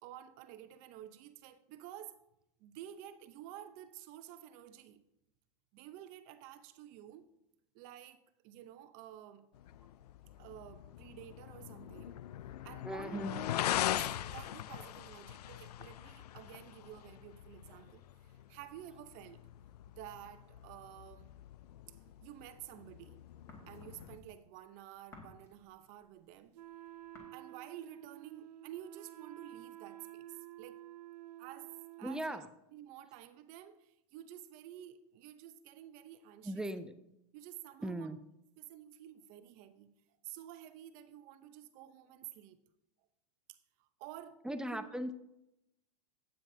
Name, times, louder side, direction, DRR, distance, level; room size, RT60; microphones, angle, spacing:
voice 1, 0.0-2.2 2.6-5.0 5.7-7.3 7.7-9.5 10.4-12.2 12.6-19.5 19.9-21.3 21.9-23.2 23.7-26.6 27.3-30.9 31.4-31.7 32.0-32.4 32.7-36.7 37.3-38.1 38.6-39.9 40.2-42.6 43.5-45.1, right 11 dB, 40° right, 0.9 m, -51 dB
sound 1, 9.5-24.2, left 12 dB, 85° left, 0.4 m, -42 dB
voice 2, 12.8-13.4 32.0-32.5 36.4-37.2 37.8-38.2 44.4-45.1, right 1 dB, 5° right, 0.4 m, -38 dB
sound 2, 21.9-22.9 23.2-27.2, left 2 dB, 15° left, 2.3 m, -57 dB
Wind instrument woodwind instrument, 26.5-32.5, right 15 dB, 90° right, 0.5 m, -51 dB
13.0 x 9.1 x 2.8 m
supercardioid pair, 135°, 20 cm